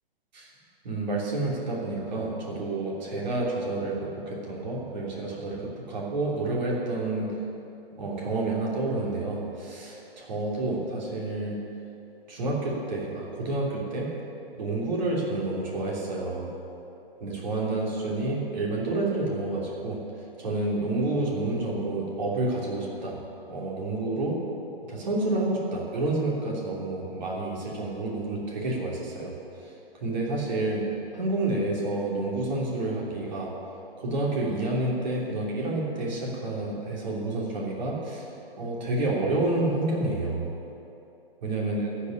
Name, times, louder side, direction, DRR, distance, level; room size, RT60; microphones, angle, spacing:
voice 1, 0.8-7.3 8.0-11.5 12.3-14.1 14.6-16.5 17.2-20.0 20.4-23.2 23.5-24.4 24.8-29.3 30.0-30.8 31.1-33.5 34.0-38.3 38.6-40.5 41.4-41.9, right 2 dB, 50° right, -4 dB, 3.1 m, -29 dB
14.0 x 5.6 x 9.7 m, 2.8 s
figure-of-eight pair, 125°, 30 cm